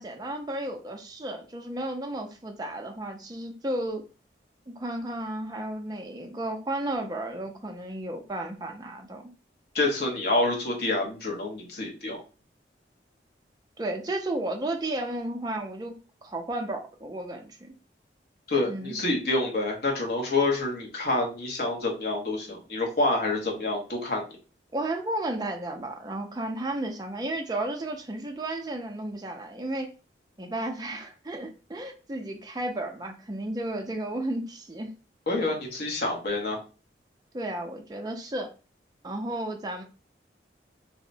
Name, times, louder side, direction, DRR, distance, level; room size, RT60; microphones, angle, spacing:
voice 1, 0.0-4.0 4.7-9.2 13.8-17.7 18.7-19.0 24.7-29.9 30.4-34.9 37.3-38.5 39.0-39.8, right 1 dB, 20° right, 3 dB, 0.4 m, -33 dB
voice 2, 9.7-12.2 18.5-24.2 35.3-36.6, left 2 dB, 55° left, 0 dB, 0.8 m, -27 dB
2.7 x 2.0 x 2.5 m, 0.33 s
head